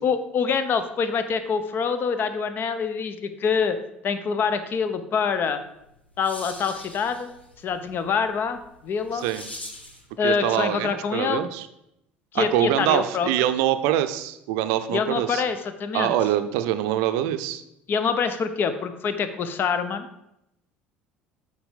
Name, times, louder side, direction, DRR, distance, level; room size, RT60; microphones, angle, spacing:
voice 1, 0.0-3.8 4.0-5.6 6.2-7.3 7.6-9.2 10.2-11.5 12.3-13.5 14.9-16.1 17.9-20.1, left 6 dB, 40° left, 11 dB, 0.7 m, -25 dB
sound 1, 5.7-10.1, left 1 dB, 85° left, 0.9 m, -43 dB
voice 2, 10.2-11.7 12.3-15.4 15.9-17.6, right 12 dB, 60° right, 10 dB, 0.6 m, -24 dB
8.8 x 4.6 x 5.1 m, 0.82 s
figure-of-eight pair, 60°, 6 cm